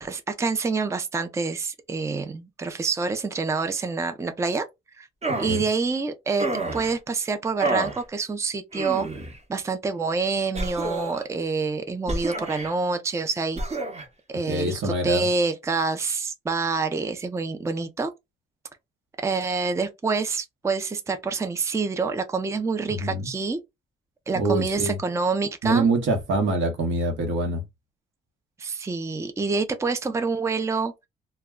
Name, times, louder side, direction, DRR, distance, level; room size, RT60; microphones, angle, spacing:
voice 1, 0.0-4.7 4.9-5.1 5.4-6.5 6.7-9.1 9.5-13.8 14.3-18.1 19.2-23.6 24.3-25.9 28.6-31.1, right 4 dB, 15° right, 0.4 m, -27 dB
sound 1, 5.2-5.6 6.4-7.0 7.6-8.0 8.7-9.4 10.5-11.2 12.1-12.7 13.5-14.0, right 2 dB, 30° right, 0.9 m, -29 dB
voice 2, 14.4-15.3 22.9-23.3 24.3-25.0 25.6-27.6, right 2 dB, 75° right, 1.0 m, -25 dB
2.2 x 2.1 x 3.5 m
cardioid pair, 90°, 20 cm